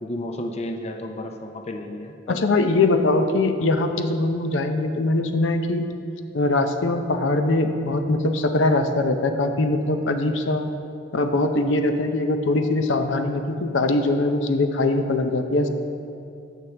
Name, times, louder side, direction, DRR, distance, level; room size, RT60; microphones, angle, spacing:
voice 1, 0.0-2.4, left 1 dB, 35° left, 3 dB, 0.6 m, -32 dB
voice 2, 2.3-5.9 6.3-10.7 11.1-15.7, left 2 dB, 75° left, 6 dB, 0.6 m, -22 dB
15.5 x 6.5 x 3.4 m, 2.5 s
head